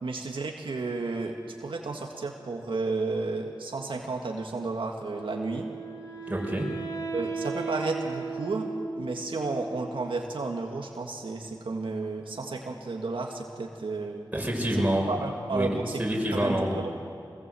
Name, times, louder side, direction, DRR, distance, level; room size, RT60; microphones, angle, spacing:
voice 1, 0.0-5.7 7.1-8.7 9.0-14.3 15.1-16.0 16.3-17.0, right 3 dB, 90° right, 1 dB, 1.8 m, -32 dB
Wind instrument woodwind instrument, 5.1-10.2, right 4 dB, 55° left, 4.8 m, -36 dB
voice 2, 6.3-6.7 14.3-15.3 15.5-16.8, equal, 15° right, -1 dB, 5.2 m, -27 dB
24.5 x 19.0 x 7.8 m, 2.4 s
wide cardioid pair, 65°, 8 cm